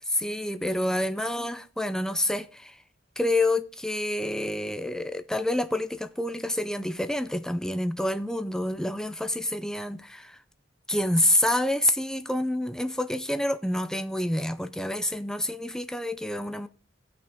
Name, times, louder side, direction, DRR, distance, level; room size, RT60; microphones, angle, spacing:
voice 1, 0.1-2.8 3.2-10.4 10.9-16.7, left 1 dB, 5° left, 0.5 m, -28 dB
16.5 x 6.0 x 3.6 m
head